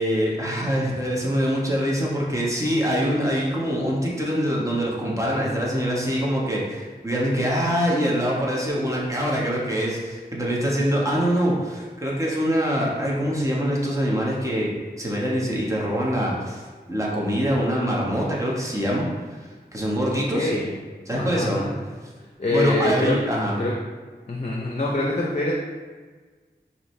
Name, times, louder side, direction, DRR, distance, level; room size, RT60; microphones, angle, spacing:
voice 1, 0.0-14.7 15.0-16.6 16.9-19.1 19.7-20.5 21.1-21.6 22.5-23.6, equal, 20° right, -4 dB, 1.1 m, -24 dB
voice 2, 20.3-20.7 21.2-21.7 22.4-23.2 23.6-23.7 24.3-25.5, left 2 dB, 40° left, -2 dB, 0.6 m, -25 dB
4.9 x 2.8 x 3.2 m, 1.4 s
wide cardioid pair, 45°, 17 cm